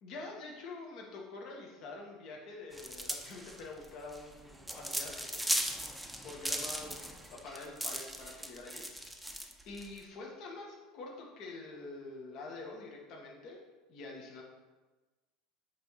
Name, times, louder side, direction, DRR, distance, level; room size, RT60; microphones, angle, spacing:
voice 1, 0.0-5.5 6.2-7.0 7.3-8.8 9.2-13.6 13.9-14.4, left 3 dB, 55° left, -1 dB, 1.6 m, -46 dB
sound 1, 2.7-10.0, right 1 dB, ahead, 0.7 m, -38 dB
8.7 x 3.5 x 5.7 m, 1.2 s
supercardioid pair, 130°, 0 cm